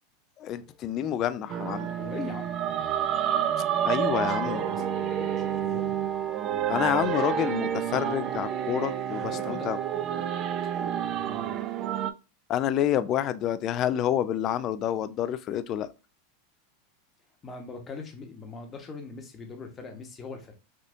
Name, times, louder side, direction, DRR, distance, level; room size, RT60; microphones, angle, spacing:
voice 1, 0.4-1.9 3.8-4.6 6.7-9.8 12.5-15.9, left 10 dB, 40° left, 0.3 m, -28 dB
Wind instrument woodwind instrument, 1.5-11.4, right 5 dB, 15° right, 0.9 m, -46 dB
sound 1, 1.5-12.1, right 10 dB, 40° right, 0.3 m, -29 dB
voice 2, 2.0-2.7 4.1-6.0 7.0-7.2 9.2-9.7 11.1-11.6 17.4-20.5, left 4 dB, 25° left, 0.9 m, -41 dB
3.4 x 2.6 x 2.6 m
hypercardioid pair, 115°, 0 cm